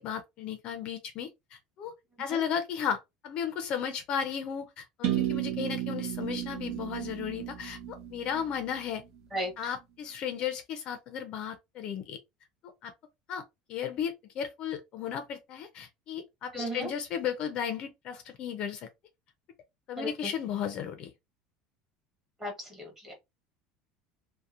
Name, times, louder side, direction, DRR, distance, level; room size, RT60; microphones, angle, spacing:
voice 1, 0.0-1.9 2.2-9.0 9.6-12.2 12.8-12.9 13.3-13.4 13.7-18.9 19.9-21.1, left 8 dB, 40° left, 0.5 m, -35 dB
sound 1, 5.0-8.9, right 11 dB, 55° right, 0.9 m, -33 dB
voice 2, 16.5-16.9 20.0-20.3 22.4-23.1, equal, 15° right, 1.1 m, -35 dB
2.7 x 2.0 x 2.4 m
cardioid pair, 160°, 2 cm